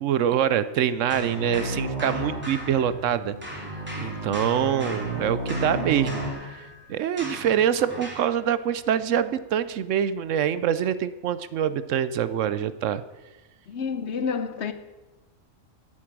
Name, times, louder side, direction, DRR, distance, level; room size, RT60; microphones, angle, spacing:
voice 1, 0.0-3.4 4.0-6.6 6.9-13.0, right 9 dB, 75° right, 0.9 m, -25 dB
sound 1, 1.1-3.2 3.4-8.3, equal, 10° right, 2.8 m, -39 dB
sound 2, 1.1-6.3, right 1 dB, 30° right, 2.8 m, -32 dB
voice 2, 13.7-14.7, left 6 dB, 60° left, 1.0 m, -29 dB
13.5 x 8.4 x 6.0 m
omnidirectional pair, 1.4 m